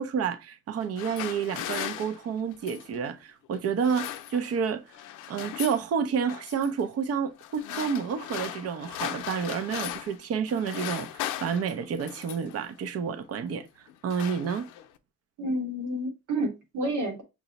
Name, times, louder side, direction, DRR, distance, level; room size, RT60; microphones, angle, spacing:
voice 1, 0.0-4.9 5.3-14.7, right 6 dB, 55° right, 0.6 m, -30 dB
sound 1, 0.8-3.0 3.6-4.7 4.9-5.9 6.3-6.7 7.4-10.2 10.5-12.6 13.4-13.6 13.9-15.0, left 12 dB, 80° left, 0.5 m, -38 dB
voice 2, 15.4-17.2, right 1 dB, 85° right, 1.4 m, -30 dB
5.8 x 2.0 x 3.9 m
cardioid pair, 90°, 30 cm